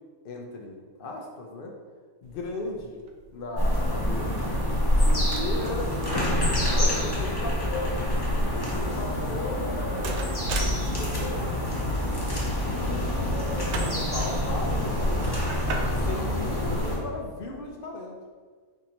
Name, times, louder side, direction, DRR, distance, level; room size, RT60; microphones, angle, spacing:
voice 1, 0.2-1.8 2.2-3.0 3.3-4.5 5.0-6.1 6.6-8.0 8.4-12.0 12.4-15.4 15.9-18.2, left 2 dB, 65° left, 1 dB, 0.5 m, -37 dB
sound 1, 2.2-17.7, right 2 dB, 65° right, 0.7 m, -41 dB
sound 2, 3.6-17.0, left 1 dB, 20° left, 0.7 m, -26 dB
4.6 x 2.6 x 4.3 m, 1.5 s
omnidirectional pair, 1.5 m